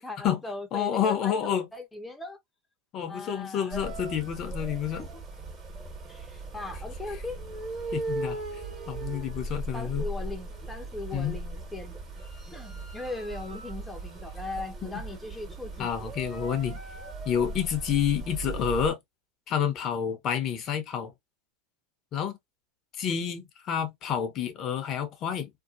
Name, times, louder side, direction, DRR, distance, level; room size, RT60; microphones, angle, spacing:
voice 1, 0.0-2.4 3.1-3.9 5.0-5.2 6.1-7.4 9.7-12.0 12.5-15.9, left 2 dB, 5° left, 0.7 m, -39 dB
voice 2, 0.7-1.7 2.9-5.1 7.1-7.2 7.9-8.4 8.9-10.1 11.1-11.4 14.9-15.0 15.8-16.8 17.2-19.0 19.5-21.1 22.1-22.4 23.0-25.5, left 8 dB, 45° left, 0.7 m, -29 dB
sound 1, 3.7-18.9, right 2 dB, 25° right, 1.4 m, -38 dB
2.7 x 2.2 x 2.4 m
hypercardioid pair, 105°, 0 cm